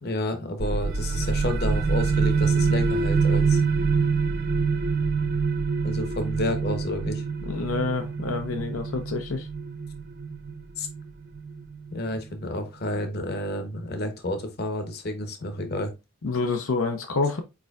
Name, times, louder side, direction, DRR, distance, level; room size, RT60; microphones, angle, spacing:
voice 1, 0.0-3.6 5.8-7.2 10.8-10.9 11.9-15.9, left 1 dB, 50° left, 0.9 m, -30 dB
sound 1, 0.6-12.0, right 5 dB, 50° right, 0.6 m, -25 dB
voice 2, 7.5-9.5 16.2-17.4, left 4 dB, 90° left, 0.7 m, -27 dB
4.8 x 4.4 x 2.4 m
head